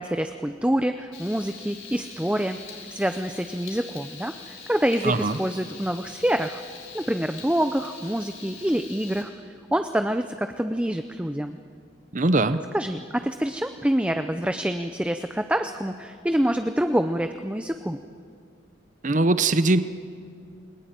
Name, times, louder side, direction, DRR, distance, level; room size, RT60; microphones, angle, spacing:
voice 1, 0.0-6.6 6.9-9.3 9.7-11.6 12.7-18.0, equal, 5° right, 8 dB, 0.6 m, -26 dB
Frying (food), 1.1-9.2, left 5 dB, 80° left, 5.6 m, -43 dB
voice 2, 5.0-5.4 12.1-12.6 19.0-19.8, right 2 dB, 40° right, 12 dB, 0.7 m, -21 dB
29.0 x 20.5 x 9.0 m, 2.2 s
head